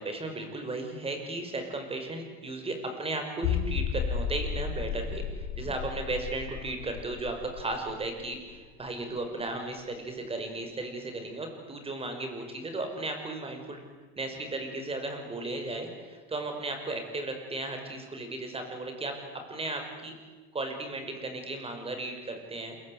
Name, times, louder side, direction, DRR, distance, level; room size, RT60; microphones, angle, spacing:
voice 1, 0.0-13.8 14.2-19.1 19.5-20.1 20.5-22.8, right 2 dB, 20° right, 5 dB, 5.9 m, -35 dB
sound 1, 3.4-8.9 9.2-9.3 9.8-9.9, left 7 dB, 80° left, 5.0 m, -33 dB
28.0 x 23.5 x 8.1 m, 1.4 s
cardioid pair, 130°, 30 cm